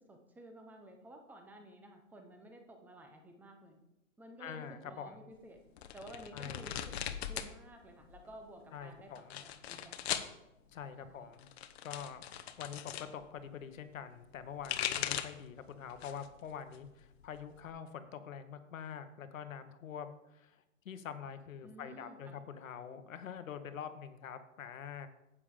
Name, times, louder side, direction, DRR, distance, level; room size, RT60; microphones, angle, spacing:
voice 1, 0.1-3.8 4.2-5.6 5.9-6.8 7.1-9.1 9.4-9.9 10.9-11.3 21.6-22.3, right 1 dB, 5° right, 4 dB, 0.8 m, -53 dB
voice 2, 4.4-5.2 6.3-6.6 8.7-9.4 10.7-11.5 11.8-12.2 12.6-25.1, left 7 dB, 75° left, 10 dB, 1.2 m, -45 dB
sound 1, 5.8-7.5 7.8-8.5 9.2-10.3 11.3-13.1 14.3-15.5 15.9-16.4 16.7-17.7, left 10 dB, 50° left, 0.9 m, -39 dB
10.0 x 8.4 x 3.7 m, 0.90 s
hypercardioid pair, 145°, 40 cm